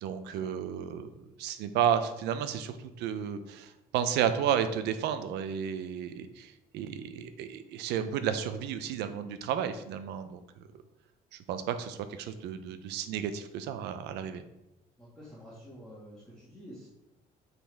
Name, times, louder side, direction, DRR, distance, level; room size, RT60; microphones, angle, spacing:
voice 1, 0.0-1.1 1.4-10.4 11.3-14.4, right 8 dB, 85° right, 10 dB, 0.6 m, -32 dB
voice 2, 15.0-16.9, equal, 5° left, -8 dB, 2.0 m, -49 dB
8.5 x 4.0 x 3.5 m, 0.96 s
cardioid pair, 110°, 17 cm